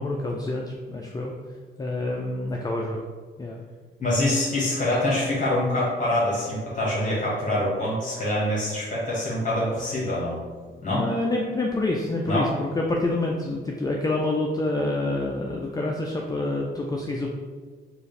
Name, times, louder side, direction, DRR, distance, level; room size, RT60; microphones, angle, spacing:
voice 1, 0.0-1.3 1.8-3.0 3.4-3.6 10.7-17.3, left 2 dB, 20° left, 0 dB, 0.4 m, -27 dB
voice 2, 4.0-10.3 10.8-11.0 12.3-12.5, left 1 dB, 40° left, -7 dB, 1.4 m, -25 dB
4.5 x 2.5 x 3.2 m, 1.5 s
cardioid pair, 90°, 20 cm